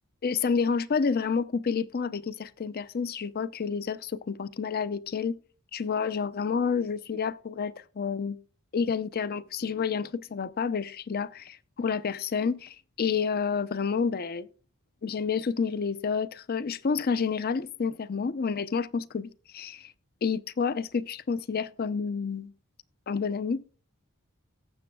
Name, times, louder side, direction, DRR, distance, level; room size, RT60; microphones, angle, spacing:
voice 1, 0.2-5.4 5.7-8.4 8.7-14.5 15.0-19.9 20.2-22.5 23.1-23.6, left 5 dB, 45° left, 0.5 m, -29 dB
18.5 x 7.7 x 2.3 m
head